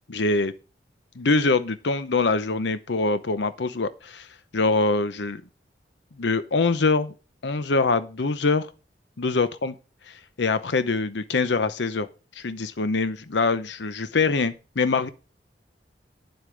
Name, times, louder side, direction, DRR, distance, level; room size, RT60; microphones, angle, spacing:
voice 1, 0.1-0.5 1.2-4.3 4.5-5.4 6.2-7.1 7.4-8.7 9.2-9.7 10.1-12.1 12.3-15.1, left 3 dB, 80° left, 12 dB, 0.8 m, -24 dB
10.0 x 7.9 x 5.0 m, 0.32 s
head